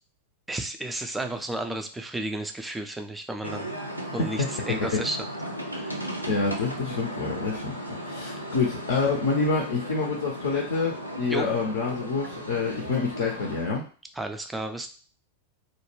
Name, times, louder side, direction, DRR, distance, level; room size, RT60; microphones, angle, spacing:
voice 1, 0.5-3.7 4.1-5.3 5.7-6.0 11.3-11.5 14.2-14.9, right 1 dB, 5° right, 6 dB, 0.3 m, -32 dB
sound 1, 3.4-13.6, equal, 90° right, 0.4 m, -36 dB
voice 2, 4.2-5.1 6.3-7.8 8.0-13.8, left 4 dB, 55° left, 0 dB, 0.5 m, -27 dB
2.2 x 2.1 x 3.1 m, 0.39 s
figure-of-eight pair, 90°, 0 cm